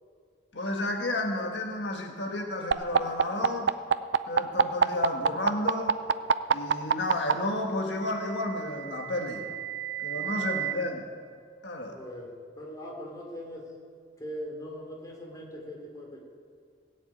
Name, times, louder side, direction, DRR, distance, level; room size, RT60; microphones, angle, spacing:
voice 1, 0.5-3.7 4.3-6.0 6.5-9.4 10.0-11.1 11.6-12.0, left 1 dB, 80° left, 2 dB, 1.5 m, -31 dB
sound 1, 2.7-7.3 8.5-10.7, right 6 dB, 80° right, 0.5 m, -25 dB
voice 2, 10.1-10.6 11.9-13.8 14.2-16.2, equal, 20° left, -1 dB, 3.1 m, -41 dB
17.5 x 7.3 x 9.1 m, 2.2 s
head